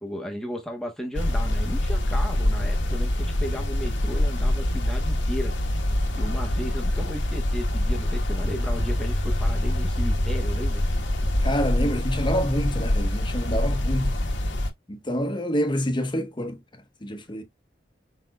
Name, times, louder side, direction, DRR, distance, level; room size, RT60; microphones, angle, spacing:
voice 1, 0.0-5.5 6.1-10.8 13.4-13.5, equal, 5° left, 1.1 m, -35 dB
sound 1, 1.2-14.7, left 1 dB, 90° left, 1.3 m, -25 dB
voice 2, 11.4-14.1 14.9-16.6 17.0-17.4, equal, 25° left, 1.1 m, -27 dB
5.4 x 4.2 x 2.3 m
head